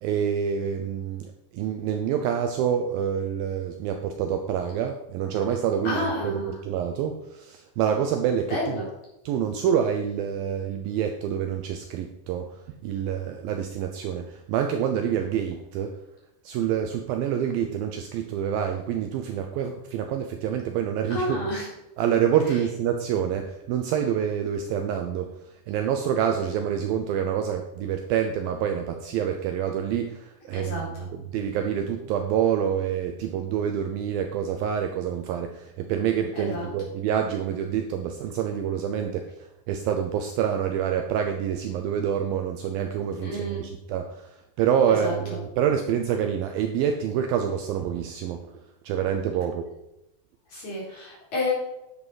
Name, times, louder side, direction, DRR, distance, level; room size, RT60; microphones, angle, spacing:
voice 1, 0.0-8.8 9.3-16.0 16.4-21.5 22.0-48.5 48.8-49.6, right 8 dB, 80° right, 5 dB, 2.2 m, -27 dB
voice 2, 5.8-6.5 8.5-8.9 21.1-21.6 30.6-30.8 36.4-36.7 43.2-43.7 45.0-45.1 50.5-51.5, left 1 dB, 45° left, -6 dB, 5.2 m, -29 dB
10.5 x 7.5 x 4.8 m, 0.88 s
omnidirectional pair, 4.7 m